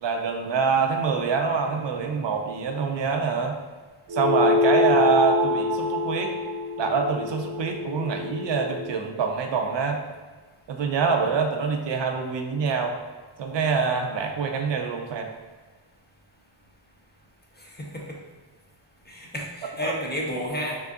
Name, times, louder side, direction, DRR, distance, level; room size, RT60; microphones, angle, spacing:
voice 1, 0.0-3.6 4.1-6.3 6.8-10.0 10.7-13.0 13.4-15.3 19.8-20.0, right 5 dB, 65° right, 4 dB, 0.5 m, -25 dB
sound 1, 4.1-8.9, left 2 dB, 80° right, 1.0 m, -25 dB
voice 2, 17.6-18.2 19.1-20.8, equal, 20° left, -2 dB, 0.5 m, -32 dB
3.7 x 3.4 x 2.3 m, 1.4 s
wide cardioid pair, 95°, 48 cm